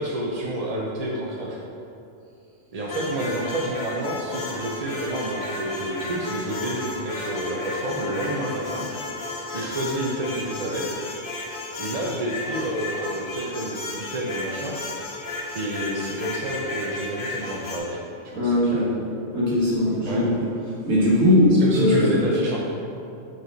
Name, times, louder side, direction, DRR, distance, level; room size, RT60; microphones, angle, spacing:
voice 1, 0.0-1.6 2.7-8.9 9.5-10.9 11.8-14.8 15.5-18.0 18.3-18.9 20.1-20.3 21.6-22.6, right 1 dB, 45° right, -4 dB, 0.5 m, -29 dB
sound 1, 2.9-17.8, left 2 dB, 45° left, 1.0 m, -33 dB
voice 2, 18.3-18.9 19.3-20.5 20.9-22.1, left 1 dB, 90° right, -8 dB, 2.2 m, -19 dB
6.8 x 4.9 x 4.0 m, 2.7 s
omnidirectional pair, 1.4 m